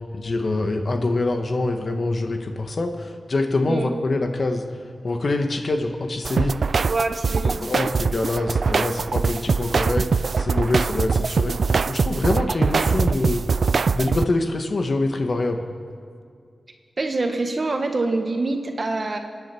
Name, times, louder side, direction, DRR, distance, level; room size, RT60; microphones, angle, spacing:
voice 1, 0.1-4.6 5.0-6.6 7.4-13.4 13.9-15.7, left 2 dB, 60° left, 5 dB, 1.4 m, -25 dB
sound 1, 6.3-14.2, right 5 dB, 70° right, 0.3 m, -22 dB
voice 2, 6.9-7.9 17.0-19.2, right 3 dB, 50° right, 4 dB, 1.6 m, -25 dB
26.5 x 9.9 x 4.5 m, 2.3 s
cardioid pair, 60°, 0 cm